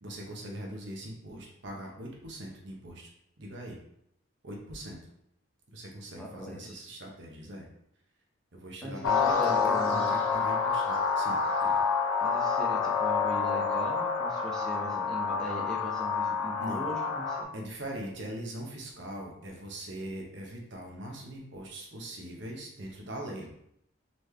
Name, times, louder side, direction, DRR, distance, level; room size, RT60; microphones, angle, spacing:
voice 1, 0.0-3.1 3.4-3.8 4.4-5.0 5.7-7.7 8.5-11.8 16.6-16.8 17.5-23.5, right 1 dB, 55° right, 0 dB, 0.8 m, -41 dB
voice 2, 6.2-6.8 8.8-10.1 12.2-17.5, equal, 5° left, -3 dB, 0.6 m, -40 dB
sound 1, 9.0-17.4, left 5 dB, 85° left, 0.6 m, -28 dB
4.0 x 3.2 x 3.3 m, 0.75 s
head